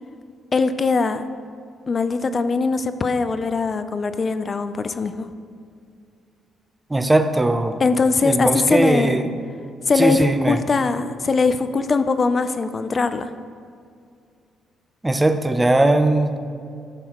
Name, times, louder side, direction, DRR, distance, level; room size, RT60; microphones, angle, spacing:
voice 1, 0.5-1.2 1.9-5.3 7.8-9.2 9.9-13.3, left 4 dB, 35° left, 11 dB, 0.5 m, -21 dB
voice 2, 6.9-7.7 8.2-9.3 10.0-10.6 15.0-16.5, right 2 dB, 15° right, 8 dB, 0.6 m, -19 dB
13.5 x 6.2 x 3.0 m, 2.3 s
cardioid pair, 90°, 0 cm